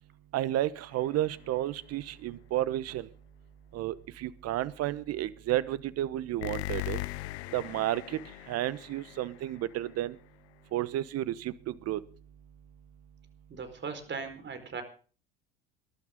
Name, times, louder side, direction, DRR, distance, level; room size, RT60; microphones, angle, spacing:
voice 1, 0.3-3.1 3.7-7.0 7.5-8.2 8.5-10.1 10.7-12.0, right 13 dB, 50° right, 17 dB, 1.2 m, -32 dB
sound 1, 0.9-1.6 6.4-10.1, left 18 dB, 80° left, 0.7 m, -40 dB
voice 2, 13.5-14.8, right 5 dB, 35° right, 9 dB, 4.7 m, -38 dB
22.5 x 12.0 x 3.8 m, 0.39 s
hypercardioid pair, 75°, 32 cm